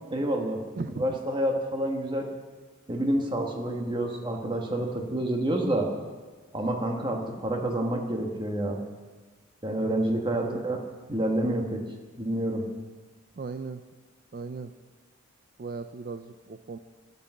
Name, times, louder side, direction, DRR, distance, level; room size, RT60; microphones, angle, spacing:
voice 1, 0.1-0.6 1.0-2.3 2.9-5.9 6.5-8.8 9.6-10.8 11.1-11.9 12.2-12.7, right 1 dB, 20° right, 2 dB, 1.3 m, -28 dB
voice 2, 9.8-10.6 13.4-13.8 14.3-14.7 15.6-16.8, right 4 dB, 45° right, 9 dB, 0.4 m, -37 dB
11.5 x 8.3 x 7.7 m, 1.4 s
head